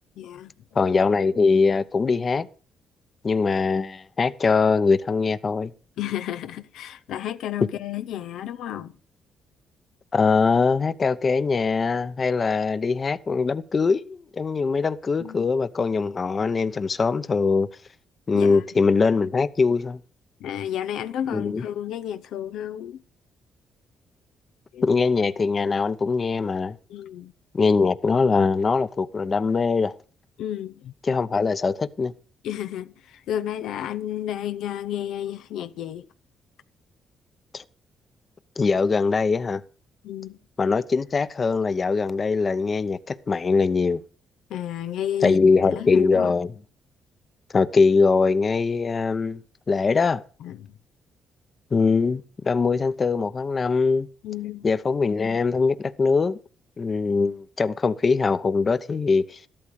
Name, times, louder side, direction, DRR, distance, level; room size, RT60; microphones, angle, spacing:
voice 1, 0.2-0.5 6.0-8.9 15.2-15.5 18.3-18.6 20.4-23.0 24.7-24.9 26.9-27.3 30.4-30.9 32.4-36.1 40.0-40.4 44.5-45.4 45.7-46.3 50.4-50.7 54.2-54.7, left 11 dB, 80° left, 0.6 m, -32 dB
voice 2, 0.7-2.5 3.2-5.7 10.1-17.7 18.3-20.0 21.3-21.6 24.8-26.8 27.5-30.0 31.0-32.1 37.5-37.6 38.6-39.6 40.6-44.0 45.2-46.5 47.5-49.4 49.7-50.2 51.7-54.1 54.6-56.4 56.8-59.4, left 4 dB, 35° left, 0.8 m, -22 dB
13.5 x 12.0 x 4.8 m
cardioid pair, 90°, 0 cm